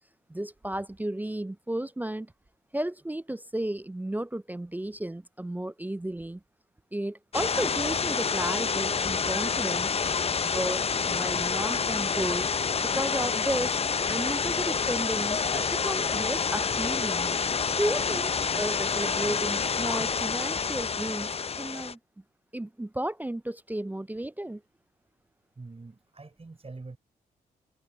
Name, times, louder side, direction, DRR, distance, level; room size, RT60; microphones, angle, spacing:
voice 1, 0.3-2.3 2.7-6.4 6.9-9.9 10.4-12.5 12.8-13.8 14.1-17.4 17.7-22.0 22.5-24.6, right 1 dB, 10° right, 0.4 m, -33 dB
sound 1, 7.3-21.9, left 5 dB, 35° left, 0.6 m, -28 dB
voice 2, 25.6-27.0, right 3 dB, 30° right, 5.8 m, -44 dB
supercardioid pair, 50°, 19 cm